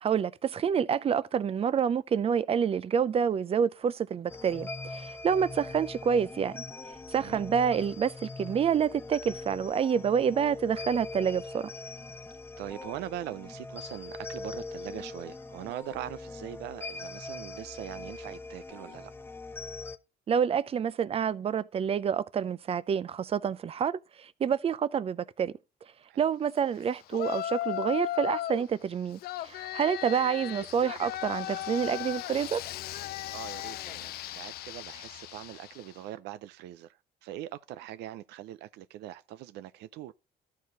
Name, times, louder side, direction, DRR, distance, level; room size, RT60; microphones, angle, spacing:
voice 1, 0.0-6.6 7.1-11.7 20.3-25.5 26.2-32.6, right 7 dB, 35° right, 0.6 m, -28 dB
sound 1, 4.3-20.0, left 3 dB, 15° left, 0.6 m, -42 dB
voice 2, 12.6-19.1 26.1-26.3 33.3-40.1, right 13 dB, 80° right, 0.5 m, -42 dB
Yell, 27.1-28.7 29.2-35.9, left 13 dB, 65° left, 0.4 m, -36 dB
13.0 x 4.8 x 3.9 m
cardioid pair, 110°, 17 cm